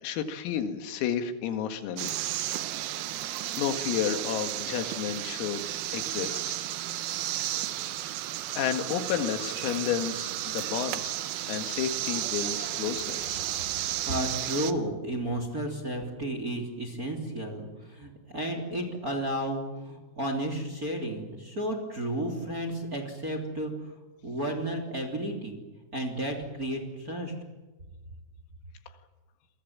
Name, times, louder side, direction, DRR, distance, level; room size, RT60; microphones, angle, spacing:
voice 1, 0.0-2.1 3.6-5.6 5.9-6.6 8.6-11.1 11.5-13.4, left 9 dB, 90° left, 7 dB, 4.5 m, -31 dB
sound 1, 2.0-14.7, right 13 dB, 85° right, 2.2 m, -33 dB
voice 2, 14.1-25.6 25.9-27.3, right 1 dB, 20° right, 4 dB, 2.7 m, -33 dB
28.5 x 23.5 x 7.4 m, 1.2 s
omnidirectional pair, 5.9 m